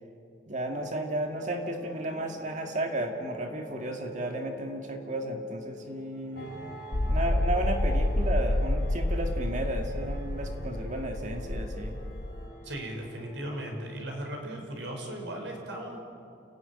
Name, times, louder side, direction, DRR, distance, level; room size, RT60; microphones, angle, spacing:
voice 1, 0.5-6.5 7.0-12.0, right 1 dB, 40° right, 3 dB, 2.0 m, -33 dB
sound 1, 0.7-14.1, left 1 dB, 10° right, 4.5 m, -48 dB
sound 2, 6.4-13.4, right 1 dB, 55° left, 3.4 m, -47 dB
sound 3, 6.9-12.5, left 1 dB, 80° left, 1.1 m, -29 dB
voice 2, 12.6-16.0, right 1 dB, 75° right, 2 dB, 5.5 m, -37 dB
29.5 x 15.0 x 9.9 m, 2.6 s
head